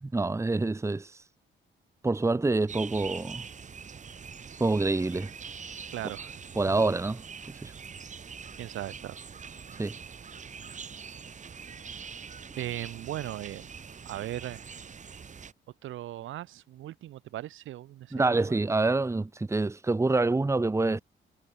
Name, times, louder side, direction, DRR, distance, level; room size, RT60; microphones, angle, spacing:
voice 1, 0.0-1.1 2.0-3.4 4.6-5.3 6.6-7.2 7.6-7.7 9.8-9.9 18.1-21.0, right 3 dB, 15° right, 1.2 m, -26 dB
sound 1, 2.7-15.5, right 6 dB, 40° right, 1.9 m, -44 dB
voice 2, 5.9-6.6 8.6-9.2 12.6-13.7 14.1-14.6 15.8-18.6, right 14 dB, 80° right, 2.2 m, -38 dB
cardioid pair, 90°, 20 cm